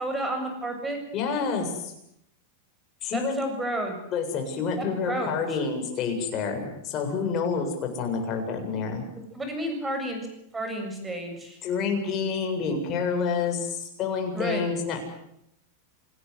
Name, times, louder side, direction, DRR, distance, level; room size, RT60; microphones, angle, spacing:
voice 1, 0.0-1.0 3.1-4.0 4.8-5.3 9.3-10.3 10.5-11.6 14.3-14.7, right 1 dB, 10° right, 6 dB, 7.3 m, -31 dB
voice 2, 1.1-1.9 3.0-3.4 4.1-9.0 11.6-15.1, left 5 dB, 35° left, 3 dB, 7.6 m, -28 dB
28.0 x 18.5 x 8.2 m, 0.77 s
supercardioid pair, 135°, 0 cm